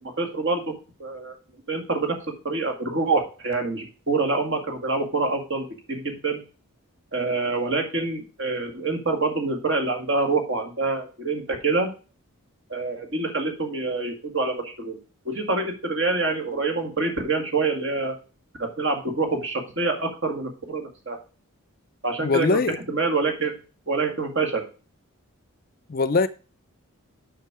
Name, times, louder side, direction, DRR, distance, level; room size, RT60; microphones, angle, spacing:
voice 1, 0.0-0.7 1.0-1.3 1.7-2.2 2.4-6.4 7.1-11.9 12.7-15.0 15.3-18.2 18.6-21.2 22.0-23.6 23.9-24.6, right 3 dB, 55° right, 2.0 m, -26 dB
voice 2, 22.2-22.8 25.9-26.3, left 3 dB, 40° left, 0.4 m, -21 dB
6.6 x 6.1 x 4.8 m
head